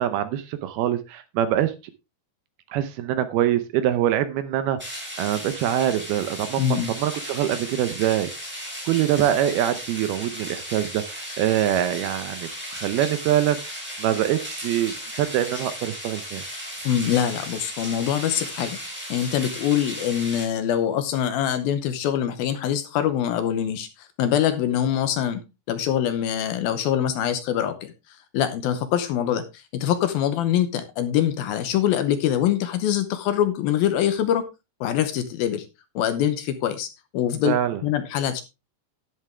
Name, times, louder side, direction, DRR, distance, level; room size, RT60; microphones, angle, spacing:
voice 1, 0.0-1.7 2.7-4.8 5.2-8.3 8.9-13.7 14.0-16.4 37.5-37.8, right 11 dB, 75° right, 11 dB, 2.5 m, -24 dB
sound 1, 4.8-20.4, equal, ahead, 4.7 m, -36 dB
voice 2, 6.6-6.9 16.8-18.8 19.1-34.5 34.8-35.7 36.0-36.9 37.1-38.4, left 10 dB, 75° left, 10 dB, 2.4 m, -24 dB
10.5 x 10.5 x 3.4 m, 0.26 s
omnidirectional pair, 4.9 m